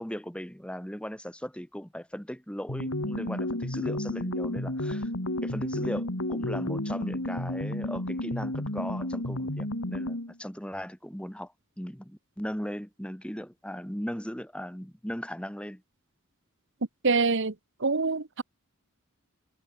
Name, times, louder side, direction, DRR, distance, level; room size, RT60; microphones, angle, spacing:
voice 1, 0.0-5.1 5.4-15.8, equal, 5° left, 4.7 m, -38 dB
sound 1, 2.7-10.3, left 1 dB, 70° left, 3.6 m, -32 dB
voice 2, 17.0-17.5 17.8-18.4, right 4 dB, 60° right, 1.3 m, -25 dB
head